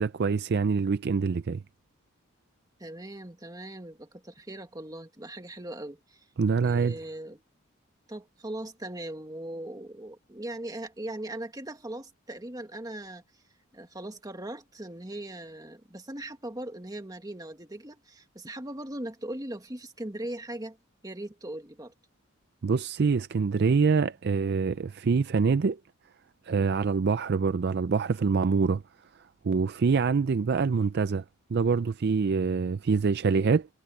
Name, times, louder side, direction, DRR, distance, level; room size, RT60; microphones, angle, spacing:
voice 1, 0.0-1.6 6.4-6.9 22.6-25.8 26.5-28.8 29.4-31.2 31.5-33.7, right 5 dB, 50° right, 0.4 m, -25 dB
voice 2, 2.8-6.3 6.6-7.4 8.1-13.2 13.7-20.8 21.0-21.9, right 1 dB, 20° right, 1.8 m, -39 dB
head